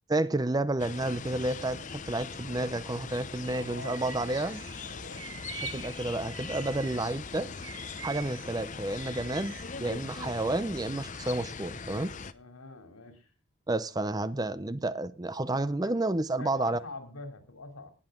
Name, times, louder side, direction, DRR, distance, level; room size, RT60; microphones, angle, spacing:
voice 1, 0.1-4.6 5.7-7.5 8.0-9.5 9.8-12.1 13.7-16.8, right 2 dB, 15° right, 15 dB, 0.5 m, -30 dB
sound 1, 0.8-12.3, left 5 dB, 35° left, 0.7 m, -41 dB
voice 2, 3.5-4.0 4.8-5.3 12.3-13.3 15.8-15.9 16.4-17.9, left 3 dB, 80° left, 6 dB, 3.1 m, -44 dB
Bird vocalization bird call bird song, 3.8-7.1 7.5-9.8, right 10 dB, 60° right, 0.9 m, -45 dB
19.5 x 7.9 x 3.7 m, 0.34 s
head